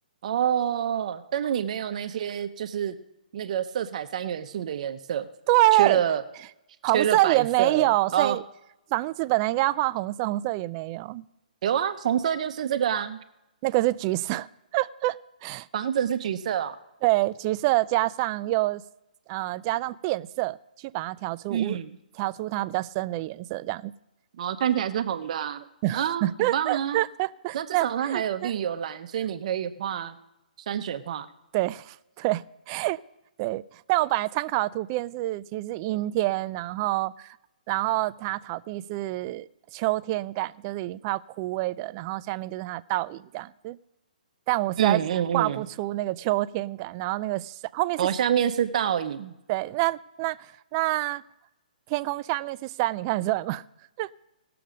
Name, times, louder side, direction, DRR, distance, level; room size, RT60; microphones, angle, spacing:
voice 1, 0.2-2.9 3.3-5.3 5.8-6.2 6.9-8.4 11.6-13.2 15.7-16.8 21.5-21.9 24.4-25.6 25.9-27.0 27.5-30.2 30.7-31.3 44.8-45.6 48.0-49.3, right 9 dB, 50° right, 0.7 m, -27 dB
voice 2, 5.5-6.0 6.8-8.4 8.9-11.2 13.6-14.5 14.7-15.7 17.0-18.8 19.3-21.8 22.2-23.9 25.8-28.5 31.5-33.0 33.4-37.4 37.7-39.5 39.7-43.8 44.5-45.0 45.3-48.1 49.5-51.2 51.9-53.6 54.0-54.1, right 18 dB, 30° right, 0.3 m, -27 dB
18.5 x 6.8 x 5.1 m
hypercardioid pair, 145°, 5 cm